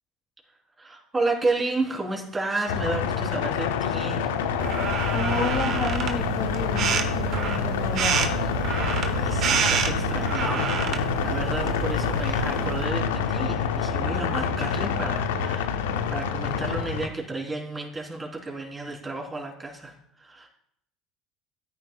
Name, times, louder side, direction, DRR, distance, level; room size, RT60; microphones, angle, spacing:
voice 1, 0.8-4.4 9.1-15.7 16.1-20.5, right 2 dB, 20° right, -1 dB, 3.3 m, -32 dB
sound 1, 2.7-17.1, left 6 dB, 85° left, 0.6 m, -27 dB
sound 2, 4.6-12.9, right 7 dB, 55° right, 1.1 m, -29 dB
voice 2, 5.1-8.5, left 4 dB, 55° left, 4 dB, 1.5 m, -31 dB
14.5 x 9.3 x 2.3 m, 0.73 s
hypercardioid pair, 80°, 0 cm